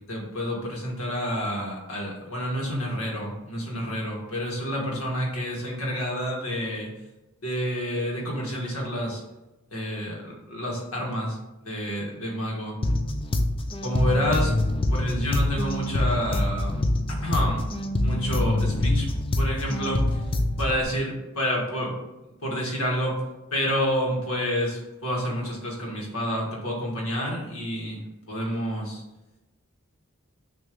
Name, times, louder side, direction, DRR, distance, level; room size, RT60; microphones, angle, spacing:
voice 1, 0.1-6.9 7.4-9.2 9.7-12.8 13.8-14.6 14.9-16.8 17.2-17.7 18.0-19.1 19.4-20.2 20.6-21.9 22.4-23.2 23.5-28.0 28.3-29.0, equal, 75° left, -1 dB, 1.7 m, -29 dB
sound 1, 12.8-20.8, left 1 dB, 25° left, 0.5 m, -25 dB
6.3 x 3.0 x 5.2 m, 1.0 s
head